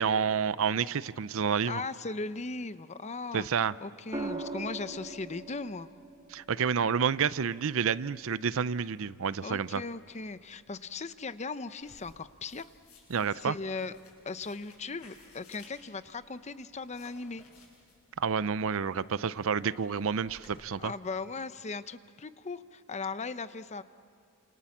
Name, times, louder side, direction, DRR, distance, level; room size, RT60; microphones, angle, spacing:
voice 1, 0.0-1.8 3.3-3.7 6.3-9.8 13.1-13.6 18.2-20.9, right 6 dB, 65° right, 17 dB, 0.6 m, -29 dB
voice 2, 1.7-3.5 3.8-5.9 9.4-12.6 13.4-14.0 14.2-17.4 20.8-23.8, left 3 dB, 30° left, 13 dB, 0.7 m, -38 dB
sound 1, 4.1-8.3 10.0-10.3, right 2 dB, 20° right, 2.3 m, -42 dB
sound 2, 11.8-20.6, left 3 dB, 70° left, 8.0 m, -59 dB
29.5 x 27.5 x 7.3 m, 2.5 s
head